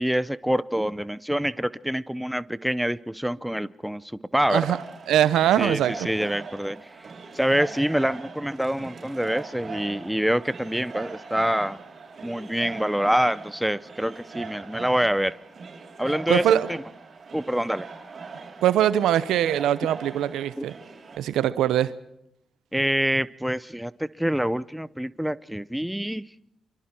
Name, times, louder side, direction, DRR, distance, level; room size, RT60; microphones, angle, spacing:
voice 1, 0.0-4.0 4.3-4.8 5.6-6.8 7.3-11.8 12.2-15.3 16.0-16.8 17.3-17.9 20.6-20.7 22.7-26.2, equal, 5° right, 0.8 m, -26 dB
sound 1, 4.5-21.2, right 4 dB, 55° right, 6.8 m, -41 dB
voice 2, 5.1-5.9 16.3-16.7 18.6-20.7 21.2-21.9, right 11 dB, 85° right, 0.8 m, -22 dB
29.5 x 25.0 x 4.6 m
supercardioid pair, 55°, 0 cm